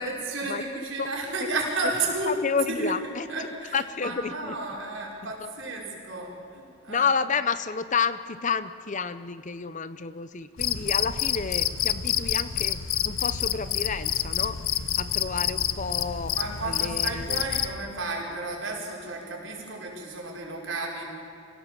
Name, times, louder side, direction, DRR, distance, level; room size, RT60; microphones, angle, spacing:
voice 1, 0.0-2.4 2.7-2.9 3.3-7.1 16.3-21.0, right 2 dB, 60° right, -1 dB, 5.1 m, -32 dB
voice 2, 2.3-3.5 3.7-4.5 5.2-5.3 6.9-14.6 15.0-16.3 16.6-17.4, left 5 dB, 35° left, 13 dB, 0.6 m, -30 dB
Cricket, 10.6-17.8, left 10 dB, 80° left, 0.9 m, -28 dB
26.0 x 16.5 x 7.6 m, 2.8 s
head